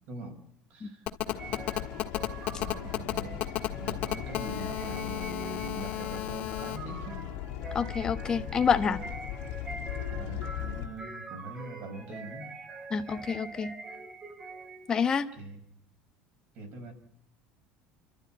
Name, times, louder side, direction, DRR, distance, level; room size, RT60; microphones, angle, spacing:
voice 1, 0.1-0.4 0.7-1.1 2.6-3.5 3.8-7.3 9.1-9.2 10.1-12.5 15.4-15.6 16.5-16.9, right 2 dB, 45° right, 5.9 m, -42 dB
Telephone, 1.1-6.8, left 14 dB, 40° left, 1.5 m, -32 dB
sound 1, 1.2-10.9, left 12 dB, 70° left, 2.3 m, -39 dB
sound 2, 1.4-15.0, right 3 dB, 15° right, 2.2 m, -45 dB
voice 2, 7.7-9.0 12.9-13.7 14.9-15.3, left 6 dB, 20° left, 1.0 m, -27 dB
29.5 x 13.0 x 9.1 m
cardioid pair, 175°, 4 cm